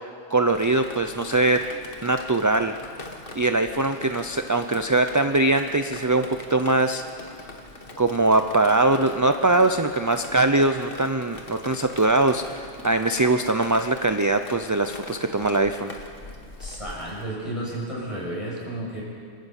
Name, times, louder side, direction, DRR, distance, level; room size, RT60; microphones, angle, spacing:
voice 1, 0.3-1.6 2.0-2.8 3.4-7.0 8.0-15.9, right 2 dB, 20° right, 7 dB, 0.5 m, -22 dB
Drip, 0.5-17.2, left 2 dB, 55° left, 1.9 m, -42 dB
voice 2, 16.6-19.0, right 1 dB, 30° left, -5 dB, 7.0 m, -32 dB
27.0 x 12.5 x 8.3 m, 2.2 s
omnidirectional pair, 1.1 m